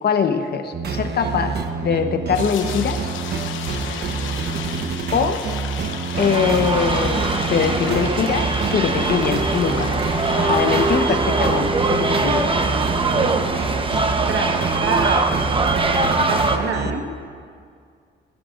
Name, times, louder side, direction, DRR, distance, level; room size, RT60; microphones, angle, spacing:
voice 1, 0.0-3.0 5.1-5.4 6.2-9.9 10.4-12.4 17.0-17.1, left 6 dB, 55° left, 6 dB, 1.1 m, -22 dB
sound 1, 0.7-16.9, right 5 dB, 55° right, 1.0 m, -27 dB
sound 2, 2.3-11.0, left 8 dB, 80° left, 0.9 m, -34 dB
sound 3, 6.1-16.6, right 3 dB, 25° right, 1.0 m, -22 dB
voice 2, 13.1-13.4 14.3-15.3 16.3-17.0, right 5 dB, 80° right, 3 dB, 1.6 m, -26 dB
20.5 x 16.5 x 2.6 m, 2.2 s
cardioid pair, 90°, 20 cm